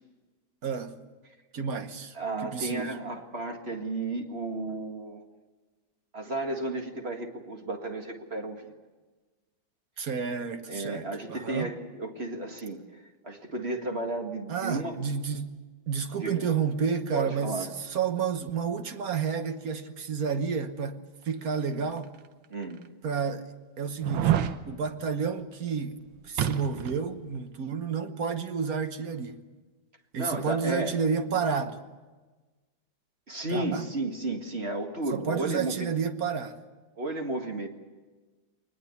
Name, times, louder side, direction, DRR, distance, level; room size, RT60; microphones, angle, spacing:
voice 1, 0.6-1.0 1.5-2.1 2.4-3.0 10.0-11.7 14.5-15.5 15.9-21.0 21.2-22.1 23.0-23.5 23.8-24.4 24.7-26.0 26.2-29.4 30.1-31.8 33.5-33.9 35.1-36.6, right 6 dB, 50° right, 1.5 m, -30 dB
voice 2, 2.1-5.2 6.1-8.7 10.7-12.8 13.2-14.9 16.2-16.4 17.1-17.7 22.5-22.8 30.2-30.9 33.3-35.9 37.0-37.7, right 2 dB, 30° right, 2.1 m, -33 dB
sound 1, 22.0-22.1 22.8-22.9 24.0-24.6 26.4-27.0 27.4-27.5, right 10 dB, 85° right, 1.7 m, -27 dB
23.0 x 20.0 x 8.4 m
omnidirectional pair, 2.1 m